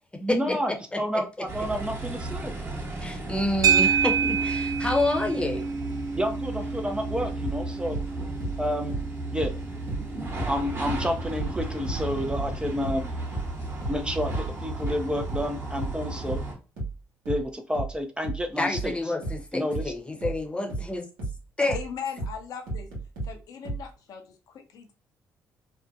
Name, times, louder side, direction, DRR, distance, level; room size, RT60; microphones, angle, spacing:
voice 1, 0.2-2.5 6.2-8.0 8.6-8.9 9.3-9.5 10.5-13.1 13.9-16.4 17.3-18.9 19.5-19.8, equal, 15° right, 0.4 m, -30 dB
sound 1, 1.5-16.5, right 2 dB, 30° right, 1.1 m, -35 dB
voice 2, 3.0-5.7 18.6-21.0 21.6-21.8, left 2 dB, 15° left, 0.8 m, -28 dB
sound 2, 3.6-12.1, right 6 dB, 55° right, 0.6 m, -29 dB
sound 3, 7.4-10.6 10.9-23.9, right 2 dB, 85° right, 0.9 m, -34 dB
voice 3, 21.7-22.9 23.2-24.9, left 7 dB, 60° left, 0.6 m, -38 dB
2.6 x 2.1 x 2.5 m
hypercardioid pair, 55°, 7 cm